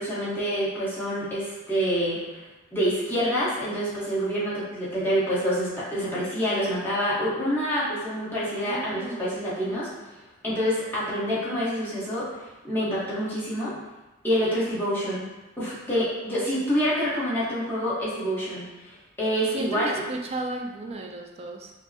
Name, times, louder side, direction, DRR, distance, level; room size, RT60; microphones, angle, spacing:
voice 1, 0.0-2.2 2.7-9.9 10.4-12.3 12.6-13.7 14.2-15.3 15.6-19.9, equal, 10° left, -9 dB, 1.1 m, -27 dB
voice 2, 8.5-9.8 19.5-21.7, right 2 dB, 30° right, 2 dB, 0.3 m, -35 dB
5.4 x 2.1 x 2.7 m, 1.1 s
head